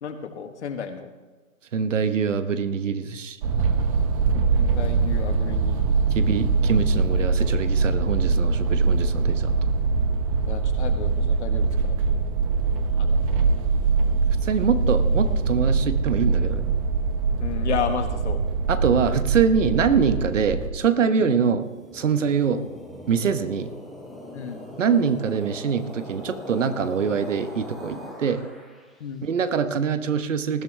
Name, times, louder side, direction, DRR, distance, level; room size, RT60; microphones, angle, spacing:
voice 1, 0.0-1.1 4.5-6.0 10.4-12.2 13.0-13.3 17.4-18.4 21.2-21.3 24.3-24.7 29.0-29.3, left 7 dB, 55° left, 7 dB, 1.7 m, -33 dB
voice 2, 1.7-3.4 6.1-9.5 14.4-16.7 18.7-22.6 23.1-23.7 24.8-28.4 29.2-30.6, right 6 dB, 60° right, 10 dB, 1.2 m, -24 dB
sound 1, 3.4-20.7, right 4 dB, 25° right, 0.9 m, -23 dB
sound 2, 21.6-29.0, left 1 dB, ahead, 0.3 m, -41 dB
19.5 x 11.5 x 3.4 m, 1.3 s
hypercardioid pair, 140°, 42 cm